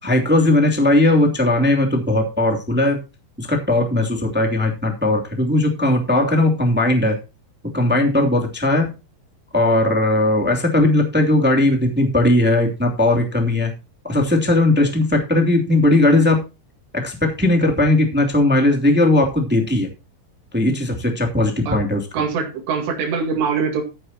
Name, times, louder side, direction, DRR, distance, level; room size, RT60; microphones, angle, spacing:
voice 1, 0.0-3.0 3.4-7.2 7.7-8.9 9.5-13.7 14.0-16.4 17.0-19.9 20.5-22.0, left 1 dB, 5° right, 2 dB, 1.9 m, -18 dB
voice 2, 22.1-23.8, right 5 dB, 90° right, 1 dB, 4.3 m, -23 dB
14.0 x 9.9 x 2.9 m, 0.29 s
omnidirectional pair, 4.7 m